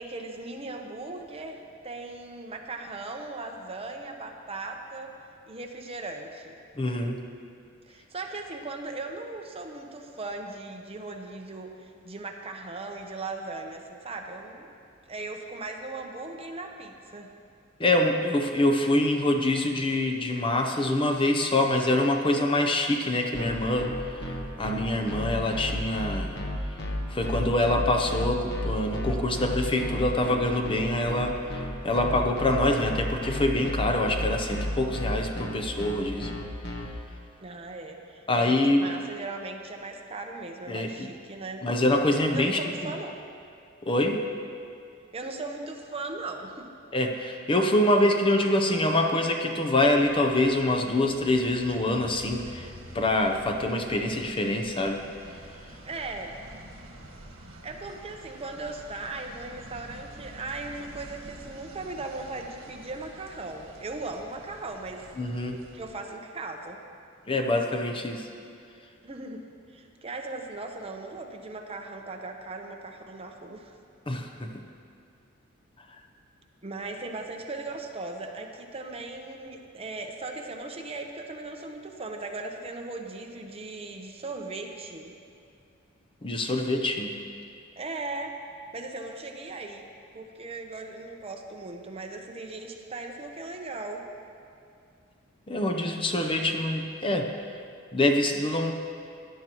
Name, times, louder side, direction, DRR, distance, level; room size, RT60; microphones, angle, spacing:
voice 1, 0.0-5.1 5.5-6.6 7.9-14.7 15.1-17.3 37.4-41.6 42.3-43.2 43.9-44.0 45.1-46.7 55.8-56.4 57.6-65.1 65.7-66.8 69.0-69.4 69.7-73.7 76.6-85.2 87.8-88.4 88.7-89.8 90.1-94.0, right 3 dB, 30° right, 3 dB, 0.8 m, -38 dB
voice 2, 6.8-7.2 17.8-26.4 27.1-36.3 38.3-38.9 40.7-41.1 41.6-42.9 43.9-44.2 46.9-55.0 65.2-65.6 67.3-68.3 74.1-74.5 86.2-87.2 95.5-97.3 97.9-98.7, left 1 dB, 25° left, 4 dB, 0.7 m, -25 dB
sound 1, 23.3-36.9, left 1 dB, 55° left, 1.2 m, -33 dB
sound 2, 49.8-65.9, right 1 dB, 80° right, 1.6 m, -47 dB
17.0 x 10.5 x 3.0 m, 2.4 s
head